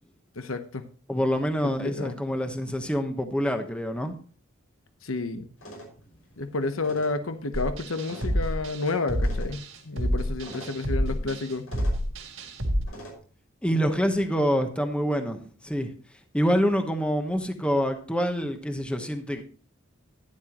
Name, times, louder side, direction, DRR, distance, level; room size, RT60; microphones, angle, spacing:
voice 1, 0.4-0.8 1.6-2.2 5.0-5.5 6.4-11.7, left 3 dB, 70° left, 9 dB, 1.0 m, -30 dB
voice 2, 1.1-4.1 13.6-15.9 16.3-19.4, equal, 5° left, 6 dB, 1.1 m, -26 dB
sound 1, 5.6-13.2, equal, 90° left, 5.9 m, -47 dB
sound 2, 7.5-12.8, equal, 85° right, 3.3 m, -28 dB
11.5 x 11.5 x 3.0 m, 0.41 s
head